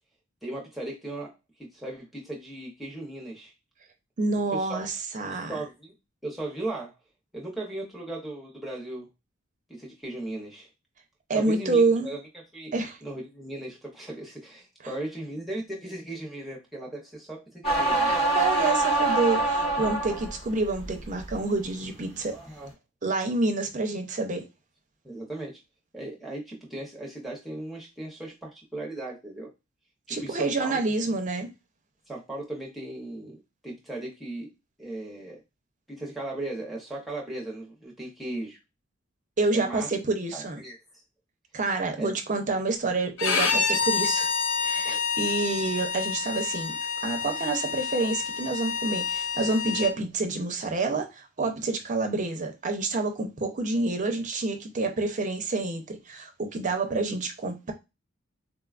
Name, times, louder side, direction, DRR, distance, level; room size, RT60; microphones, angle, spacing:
voice 1, 0.4-1.3 1.6-3.5 4.5-4.8 5.2-5.9 6.2-7.0 7.3-9.1 9.7-10.7 11.3-12.2 12.5-12.7 13.0-18.1 22.3-22.7 25.0-25.6 25.9-29.5 30.1-30.8 32.1-34.5 34.8-35.4 35.9-38.6 39.5-39.9 40.3-40.8 42.0-42.1 44.8-45.0, right 2 dB, ahead, 0.7 m, -37 dB
voice 2, 4.2-5.6 11.3-12.1 12.7-13.0 18.1-22.4 23.0-24.4 30.1-31.5 39.4-40.6 41.5-44.3 44.6-44.9 45.2-46.7 47.0-57.7, right 3 dB, 35° right, 0.5 m, -28 dB
sound 1, 17.6-20.4 20.8-21.3, right 2 dB, 25° left, 1.0 m, -25 dB
Bowed string instrument, 43.2-49.9, left 6 dB, 70° left, 0.6 m, -28 dB
3.9 x 2.2 x 2.3 m
head